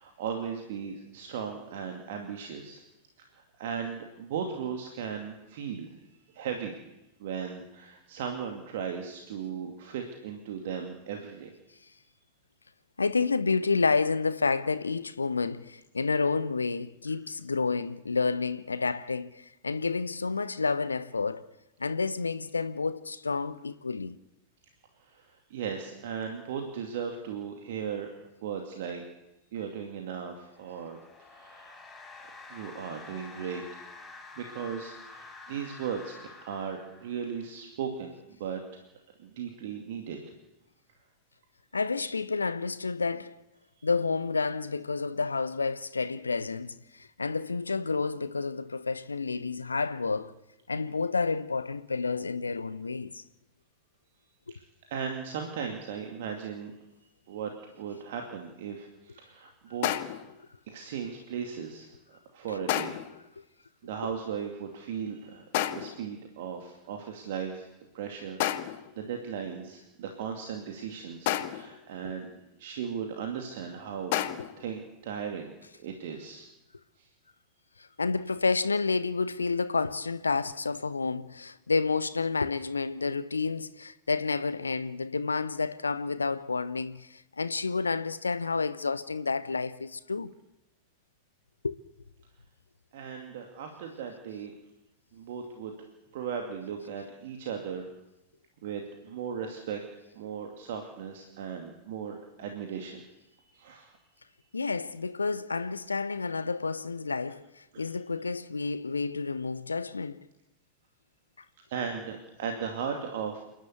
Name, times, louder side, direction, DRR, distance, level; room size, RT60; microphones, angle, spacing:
voice 1, 0.0-2.8 3.3-5.9 6.3-6.8 7.2-11.5 25.1-28.1 28.4-29.0 29.5-31.7 32.5-33.6 34.4-38.1 38.4-38.8 39.2-40.2 54.8-56.7 57.3-60.3 60.7-61.9 62.3-62.9 63.8-65.4 65.7-67.7 67.9-72.3 72.6-74.2 74.6-75.5 75.8-76.5 77.0-77.1 92.9-94.5 95.1-95.7 96.1-97.8 98.6-99.8 100.1-103.0 103.5-103.9 107.7-107.9 111.7-113.4, right 7 dB, 55° right, 2.5 m, -37 dB
voice 2, 13.0-21.5 21.8-24.2 41.7-43.4 43.8-50.3 50.7-53.2 64.0-64.1 72.0-72.1 77.8-90.3 91.6-91.8 104.5-110.2, left 4 dB, 75° left, 0.8 m, -30 dB
sound 1, 30.4-37.4, left 4 dB, 15° left, 6.9 m, -48 dB
sound 2, 59.8-60.3 62.7-63.2 65.5-66.1 68.4-68.9 71.3-71.8 74.1-74.6, left 13 dB, 50° left, 1.2 m, -30 dB
28.5 x 11.5 x 8.2 m
figure-of-eight pair, 90°, 0 cm